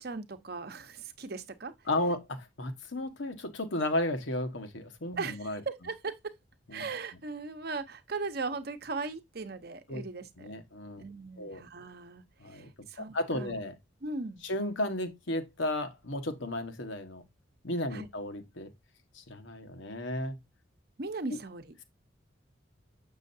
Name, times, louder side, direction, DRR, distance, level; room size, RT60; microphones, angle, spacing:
voice 1, 0.0-1.7 5.2-6.3 6.7-10.5 11.0-13.6 14.0-14.4 17.9-18.1 21.0-21.7, right 3 dB, 50° right, 0.8 m, -38 dB
voice 2, 1.9-5.6 6.7-6.8 9.9-10.0 10.4-11.0 11.4-11.6 12.4-12.7 13.0-13.7 14.4-17.2 17.6-18.7 19.1-20.4 21.3-21.4, left 1 dB, 75° left, 1.3 m, -34 dB
7.5 x 6.2 x 2.6 m
head